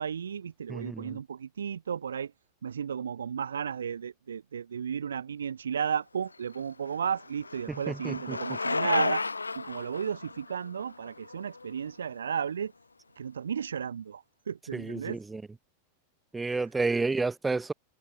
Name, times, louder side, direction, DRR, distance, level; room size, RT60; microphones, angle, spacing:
voice 1, 0.0-2.3 2.6-9.2 9.5-12.7 13.1-15.2 16.4-16.7, right 7 dB, 70° right, 2.7 m, -34 dB
voice 2, 0.7-1.2 7.7-8.4 14.7-15.4 16.3-17.7, right 3 dB, 10° right, 2.7 m, -31 dB
Bicycle, 6.3-12.3, left 3 dB, 80° left, 1.4 m, -34 dB
figure-of-eight pair, 90°, 0 cm